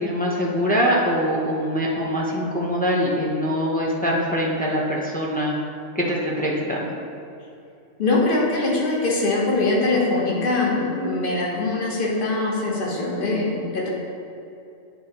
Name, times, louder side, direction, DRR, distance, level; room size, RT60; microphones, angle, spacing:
voice 1, 0.0-5.6 5.9-6.9, equal, 10° left, -4 dB, 0.4 m, -23 dB
voice 2, 8.0-13.9, left 2 dB, 45° left, -3 dB, 1.2 m, -22 dB
8.1 x 4.3 x 2.9 m, 2.7 s
omnidirectional pair, 1.3 m